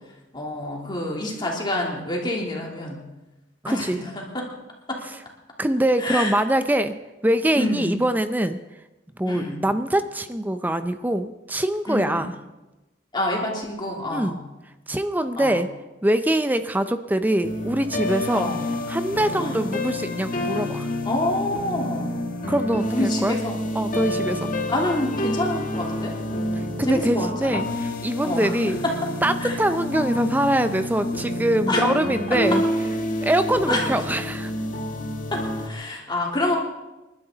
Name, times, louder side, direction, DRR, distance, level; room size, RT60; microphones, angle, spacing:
voice 1, 0.3-3.0 3.6-4.4 4.9-5.0 6.0-6.3 7.5-7.9 9.3-9.6 11.9-12.3 13.1-14.4 15.3-15.6 18.3-18.7 19.4-19.5 21.0-22.2 22.9-23.6 24.7-26.1 26.8-27.6 28.2-28.5 28.8-29.0 29.4-29.6 31.7-31.8 32.5-32.6 33.7-33.9 35.3-36.6, left 1 dB, 25° left, -1 dB, 3.1 m, -27 dB
voice 2, 3.6-4.0 5.6-6.9 7.2-8.6 9.2-12.3 14.1-14.4 14.9-15.7 16.0-18.5 18.9-20.9 22.5-23.4 23.7-24.5 26.5-28.8 29.2-32.6 33.2-34.5, right 1 dB, 10° right, 10 dB, 0.5 m, -23 dB
sound 1, 17.4-35.7, left 1 dB, 45° left, 1.6 m, -28 dB
28.5 x 12.0 x 4.0 m, 1.0 s
head